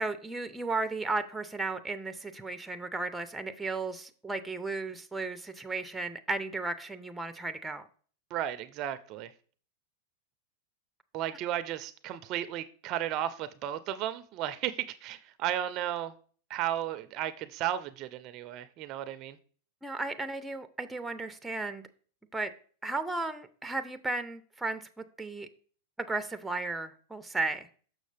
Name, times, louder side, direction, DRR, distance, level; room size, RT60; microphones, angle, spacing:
voice 1, 0.0-7.9 19.8-21.8 22.3-22.5 22.8-25.5 26.0-27.7, right 3 dB, 5° right, 0.6 m, -34 dB
voice 2, 8.3-9.3 11.1-16.1 16.5-19.4, right 11 dB, 45° right, 0.5 m, -34 dB
6.3 x 6.3 x 3.3 m
hypercardioid pair, 115°, 0 cm